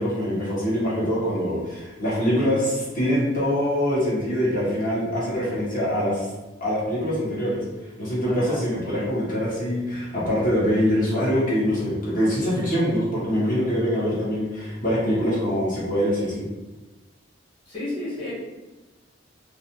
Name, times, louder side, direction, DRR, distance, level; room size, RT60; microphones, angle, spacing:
voice 1, 0.0-6.3 6.6-7.6 8.0-16.5, equal, 45° left, -8 dB, 0.9 m, -24 dB
voice 2, 8.2-8.6 17.7-18.3, left 1 dB, 25° left, -8 dB, 1.2 m, -31 dB
2.4 x 2.1 x 2.8 m, 1.2 s
head